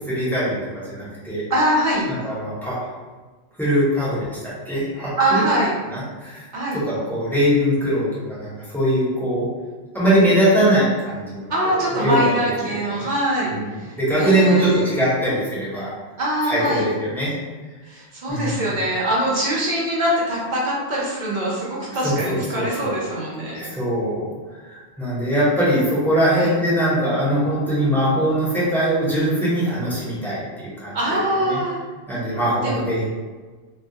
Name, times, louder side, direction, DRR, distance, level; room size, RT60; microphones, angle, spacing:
voice 1, 0.1-1.4 2.1-2.9 3.6-4.4 4.7-5.4 5.9-6.4 6.7-9.5 9.9-13.0 13.5-15.9 16.4-17.3 18.3-18.7 22.0-23.0 23.5-24.3 24.6-31.2 31.4-31.6 32.1-33.1, equal, ahead, -10 dB, 0.6 m, -22 dB
voice 2, 1.5-2.1 5.2-5.7 6.5-6.8 11.5-13.5 13.8-15.0 16.2-16.9 17.9-23.6 26.3-26.5 30.9-31.8 32.6-32.9, right 1 dB, 55° right, -5 dB, 0.6 m, -23 dB
2.2 x 2.1 x 2.7 m, 1.4 s
omnidirectional pair, 1.1 m